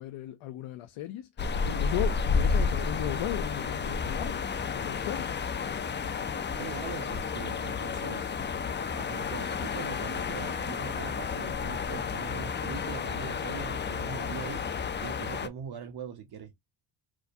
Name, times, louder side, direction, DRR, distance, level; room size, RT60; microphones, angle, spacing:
voice 1, 0.0-5.3, left 13 dB, 75° left, 0.7 m, -36 dB
sound 1, 1.4-15.5, left 5 dB, 25° left, 0.4 m, -31 dB
voice 2, 6.5-8.4 9.0-14.6 15.0-16.5, right 7 dB, 50° right, 0.9 m, -42 dB
4.8 x 2.2 x 2.6 m
cardioid pair, 105°, 49 cm